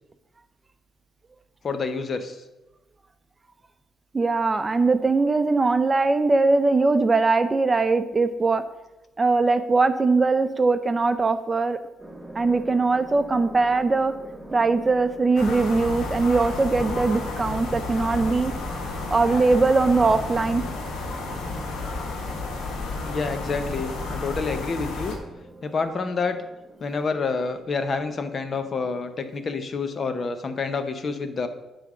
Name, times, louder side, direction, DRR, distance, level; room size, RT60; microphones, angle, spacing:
voice 1, 1.6-2.4 23.0-25.2 25.6-26.4 26.8-31.5, left 4 dB, 45° left, 9 dB, 0.8 m, -28 dB
voice 2, 4.1-8.6 9.2-11.8 12.3-14.1 14.5-18.5 19.1-20.6, right 3 dB, 25° right, 10 dB, 0.6 m, -21 dB
sound 1, 12.0-29.5, right 1 dB, ahead, 1.8 m, -44 dB
sound 2, 15.4-25.2, left 3 dB, 80° left, 1.4 m, -32 dB
9.4 x 3.5 x 6.1 m, 1.0 s
cardioid pair, 90°, 0 cm